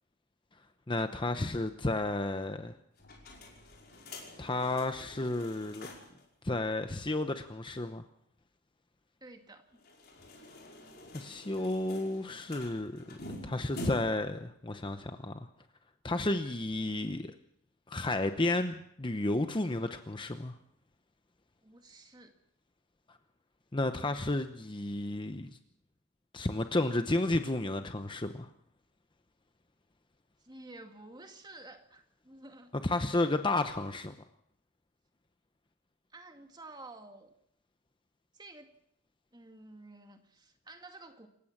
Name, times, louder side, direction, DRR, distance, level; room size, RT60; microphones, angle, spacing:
voice 1, 0.9-2.7 4.4-5.9 6.4-8.0 11.1-15.4 16.0-17.3 17.9-20.5 23.7-25.5 26.3-28.5 32.8-34.1, left 2 dB, 20° left, 8 dB, 0.8 m, -32 dB
sound 1, 3.0-6.2 6.5-6.6 6.9-7.0 9.7-14.3, left 1 dB, 45° left, 5.4 m, -47 dB
voice 2, 9.2-9.8 21.6-22.3 30.4-32.7 36.1-37.3 38.3-38.7 39.3-41.3, right 2 dB, 20° right, 5 dB, 2.1 m, -51 dB
27.5 x 15.5 x 7.3 m, 0.73 s
head